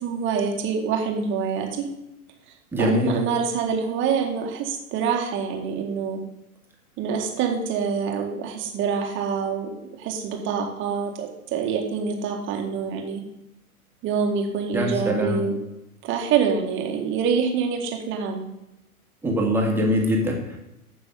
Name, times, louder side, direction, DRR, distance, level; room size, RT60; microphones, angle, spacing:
voice 1, 0.0-1.9 2.8-6.2 7.0-13.2 14.0-15.6 16.0-18.4, right 6 dB, 25° right, 2 dB, 1.9 m, -26 dB
voice 2, 2.7-3.1 14.7-15.4 19.2-20.6, equal, 5° right, -2 dB, 2.1 m, -23 dB
14.5 x 6.0 x 3.8 m, 0.89 s
figure-of-eight pair, 110°, 44 cm